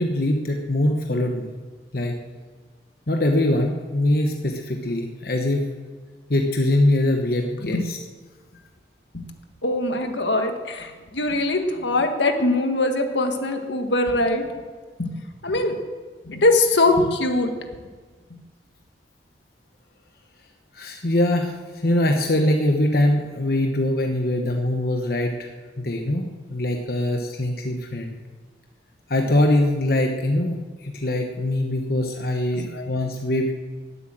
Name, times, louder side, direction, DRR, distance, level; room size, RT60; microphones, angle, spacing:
voice 1, 0.0-1.5 1.9-2.1 3.1-5.7 6.3-8.0 20.7-25.5 25.8-28.1 29.1-33.5, left 1 dB, 55° left, 2 dB, 1.2 m, -22 dB
voice 2, 9.6-14.4 15.0-15.8 16.3-17.5 32.6-32.9, left 2 dB, 80° left, 5 dB, 1.8 m, -22 dB
20.0 x 8.2 x 7.7 m, 1.4 s
head